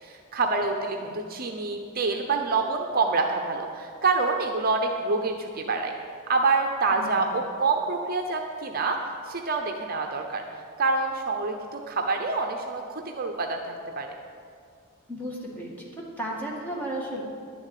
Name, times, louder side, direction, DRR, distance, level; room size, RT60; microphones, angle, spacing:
voice 1, 0.0-5.9 6.3-9.0 9.3-10.4 10.8-14.1, right 4 dB, 40° right, 3 dB, 0.8 m, -27 dB
voice 2, 6.9-7.2 15.1-15.9 16.2-17.2, right 1 dB, 10° left, -3 dB, 2.0 m, -34 dB
11.0 x 7.1 x 9.1 m, 2.3 s
head